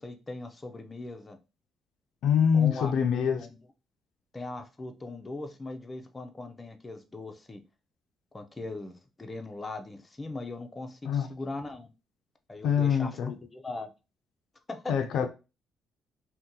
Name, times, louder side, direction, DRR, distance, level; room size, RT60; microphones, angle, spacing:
voice 1, 0.0-1.4 2.5-3.6 4.3-7.6 8.3-11.9 12.5-13.9 14.7-14.9, left 2 dB, 20° left, 0.5 m, -40 dB
voice 2, 2.2-3.5 11.1-11.3 12.6-13.3 14.9-15.3, left 7 dB, 80° left, 0.4 m, -25 dB
2.7 x 2.2 x 3.7 m
cardioid pair, 90°, 0 cm